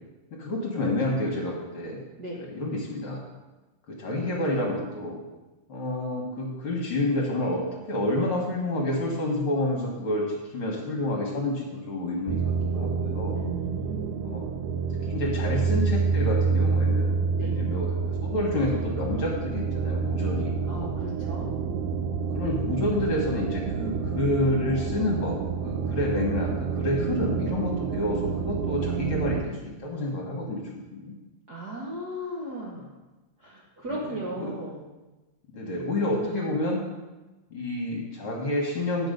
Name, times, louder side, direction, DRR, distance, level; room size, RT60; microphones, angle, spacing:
voice 1, 0.4-2.0 2.4-3.2 3.9-5.2 5.7-13.4 14.2-14.5 15.0-18.0 18.2-20.9 22.3-30.6 30.9-31.1 33.9-34.5 35.5-36.8 37.5-39.1, left 1 dB, 55° left, -2 dB, 2.0 m, -29 dB
sound 1, 12.3-29.4, right 5 dB, 80° right, 1.4 m, -28 dB
voice 2, 13.3-14.8 17.3-17.5 20.7-21.5 31.5-32.9 33.4-34.9 35.8-36.4, right 1 dB, 50° right, -5 dB, 1.2 m, -37 dB
9.0 x 6.0 x 5.1 m, 1.1 s
omnidirectional pair, 3.3 m